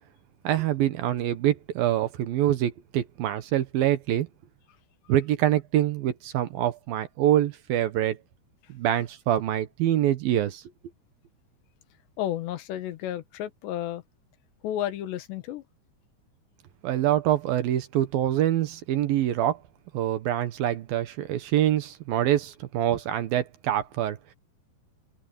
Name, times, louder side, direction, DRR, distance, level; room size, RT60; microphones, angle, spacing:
voice 1, 0.4-4.3 5.1-8.2 8.7-10.6 16.8-19.6 19.9-24.2, right 12 dB, 70° right, 2.7 m, -25 dB
voice 2, 12.2-14.0 14.6-15.6, left 12 dB, 85° left, 3.6 m, -32 dB
omnidirectional pair, 4.9 m